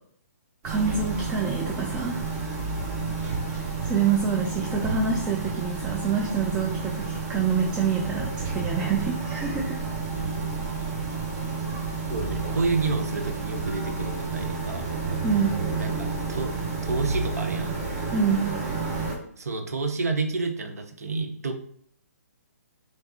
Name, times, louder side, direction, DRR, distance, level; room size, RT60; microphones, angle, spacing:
voice 1, 0.6-2.2 3.8-9.8 15.2-15.6 18.1-18.5, right 6 dB, 10° right, -1 dB, 0.3 m, -26 dB
sound 1, 0.6-19.2, right 4 dB, 25° right, 1.0 m, -30 dB
voice 2, 10.1-10.5 12.1-14.9 15.8-16.5 16.8-17.8 19.4-21.6, right 3 dB, 65° right, 5 dB, 0.6 m, -30 dB
3.3 x 3.3 x 2.7 m, 0.63 s
figure-of-eight pair, 130°, 9 cm